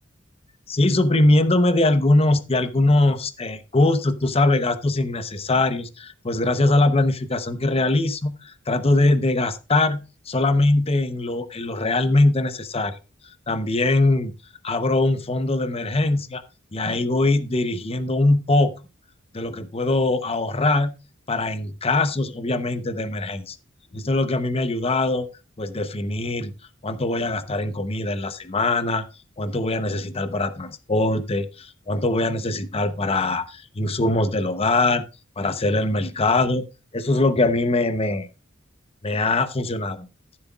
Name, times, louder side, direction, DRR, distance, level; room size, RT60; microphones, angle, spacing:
voice 1, 0.7-12.9 13.2-14.3 14.6-16.4 16.7-18.7 19.3-20.9 21.3-23.6 23.9-25.3 25.6-26.5 26.8-29.0 29.4-35.0 35.4-36.7 36.9-38.3 39.0-40.1, left 2 dB, 30° left, 11 dB, 0.8 m, -22 dB
14.0 x 7.6 x 2.4 m, 0.29 s
head